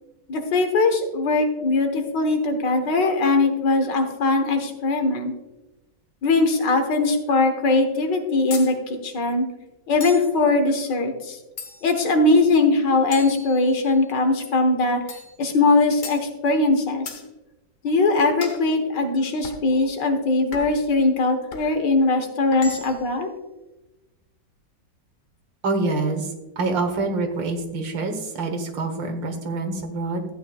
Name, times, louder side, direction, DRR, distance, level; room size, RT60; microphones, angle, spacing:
voice 1, 0.3-5.3 6.2-9.5 9.9-11.4 11.8-15.0 15.4-17.2 17.8-23.3, left 3 dB, 75° left, 5 dB, 1.8 m, -21 dB
sound 1, 8.5-8.8 10.0-10.4 11.6-12.0 13.1-14.0 15.1-15.4 16.0-16.3 17.1-17.3 18.4-18.7 19.4-19.7 20.5-20.9 21.5-21.7 22.5-23.1, left 4 dB, 50° left, 1.3 m, -36 dB
voice 2, 25.6-30.3, right 3 dB, 85° right, 5 dB, 1.9 m, -26 dB
13.5 x 9.0 x 2.3 m, 1.0 s
omnidirectional pair, 2.0 m